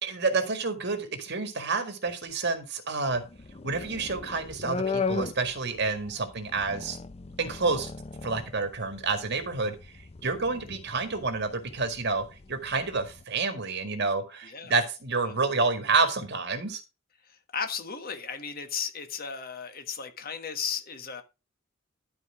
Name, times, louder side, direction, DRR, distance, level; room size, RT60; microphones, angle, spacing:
voice 1, 0.0-3.2 3.6-7.0 7.4-7.9 8.2-9.8 10.2-16.8, right 4 dB, 55° right, 1.8 m, -29 dB
sound 1, 3.1-13.2, left 4 dB, 30° left, 0.5 m, -38 dB
voice 2, 14.4-14.7 15.2-15.4 17.5-21.2, left 6 dB, 45° left, 1.5 m, -35 dB
12.0 x 4.8 x 4.9 m
head